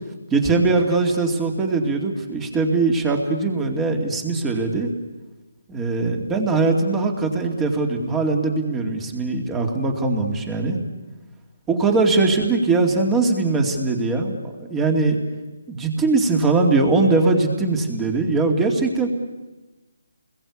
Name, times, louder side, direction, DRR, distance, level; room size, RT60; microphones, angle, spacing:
voice 1, 0.3-4.9 5.7-10.8 11.7-15.2 15.7-19.1, right 3 dB, 10° right, 3 dB, 2.5 m, -21 dB
29.0 x 21.5 x 8.5 m, 1.2 s
hypercardioid pair, 165°, 0 cm